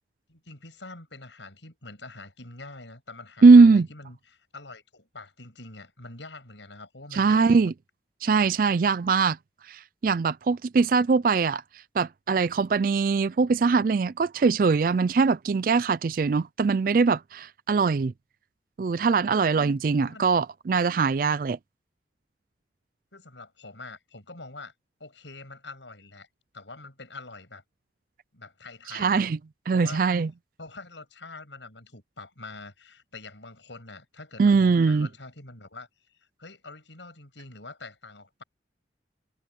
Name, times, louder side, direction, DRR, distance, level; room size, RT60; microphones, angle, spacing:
voice 1, 0.3-7.7 20.0-20.3 23.1-24.7 25.0-26.3 26.5-27.6 28.3-29.3 29.7-30.0 30.6-35.9 36.4-38.4, left 3 dB, 85° left, 7.8 m, -45 dB
voice 2, 3.4-3.9 7.1-7.7 8.2-9.4 9.7-11.6 12.0-18.1 18.8-21.6 28.9-29.4 29.7-30.3 34.4-35.1, right 4 dB, 50° right, 0.3 m, -21 dB
head